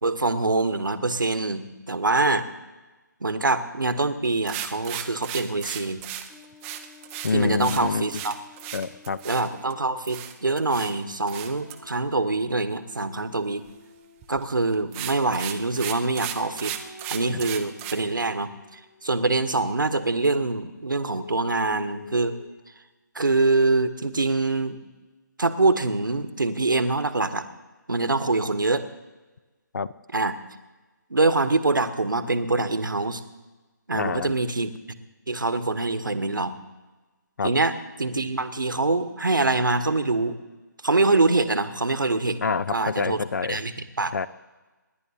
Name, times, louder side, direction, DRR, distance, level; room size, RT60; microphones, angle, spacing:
voice 1, 0.0-2.5 3.2-6.0 7.3-8.4 9.2-13.6 14.3-16.7 17.1-22.3 23.1-24.8 25.4-27.4 27.9-28.8 30.1-30.4 31.1-33.2 33.9-34.8 35.3-36.5 37.4-40.4 40.8-42.4 42.7-44.1, right 3 dB, 80° right, 10 dB, 1.1 m, -24 dB
sound 1, 4.5-9.7 10.1-10.9 11.3-11.8 14.2-14.4 14.7-17.9, right 11 dB, 10° right, 0.5 m, -35 dB
sound 2, 6.3-10.0 11.2-14.3 16.3-19.8 20.9-22.5, left 3 dB, 30° left, 1.9 m, -48 dB
voice 2, 7.2-8.1 8.7-9.2 29.7-29.9 33.9-34.3 37.4-37.5 42.4-43.6 44.1-44.3, left 5 dB, 60° left, 18 dB, 0.5 m, -26 dB
27.0 x 10.5 x 2.7 m, 1.2 s
figure-of-eight pair, 150°, 11 cm